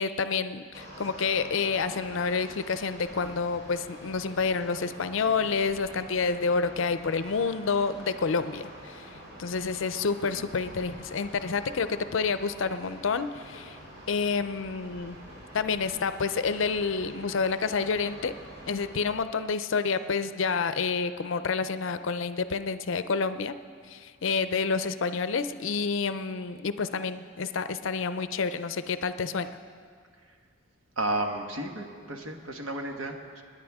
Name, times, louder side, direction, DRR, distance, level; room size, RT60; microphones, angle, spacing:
voice 1, 0.0-9.1 9.4-13.8 14.1-15.2 15.5-18.3 18.7-23.6 23.9-29.5, left 5 dB, 70° left, 12 dB, 0.5 m, -29 dB
sound 1, 0.7-19.2, equal, 50° right, 3.1 m, -46 dB
voice 2, 31.0-33.4, right 2 dB, 80° right, 3 dB, 1.3 m, -33 dB
27.5 x 10.0 x 3.6 m, 2.1 s
head